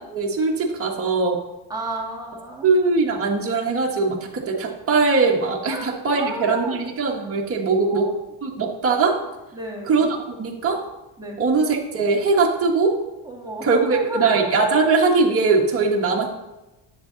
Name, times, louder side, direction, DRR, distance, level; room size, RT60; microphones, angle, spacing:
voice 1, 0.1-1.4 2.6-8.1 8.4-9.2 9.9-10.8 11.4-13.0 13.6-16.3, right 4 dB, 30° right, -1 dB, 1.5 m, -21 dB
voice 2, 1.7-2.7 5.6-6.8 7.8-8.1 9.5-10.0 11.2-11.4 13.2-14.5, right 1 dB, 10° right, -2 dB, 1.9 m, -32 dB
10.0 x 7.6 x 4.0 m, 1.0 s
cardioid pair, 140°, 47 cm